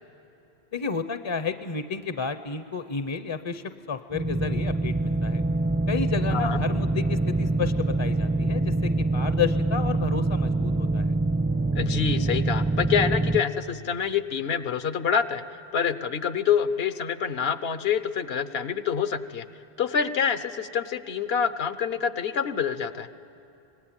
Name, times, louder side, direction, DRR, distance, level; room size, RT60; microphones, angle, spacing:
voice 1, 0.7-5.4 5.9-11.1, left 5 dB, 35° left, 10 dB, 0.6 m, -31 dB
sound 1, 4.1-13.4, right 2 dB, 15° right, 0.5 m, -25 dB
voice 2, 6.3-6.6 11.7-15.4 15.7-19.4 19.8-23.1, left 7 dB, 75° left, 12 dB, 1.1 m, -26 dB
25.5 x 20.0 x 8.9 m, 2.8 s
omnidirectional pair, 1.0 m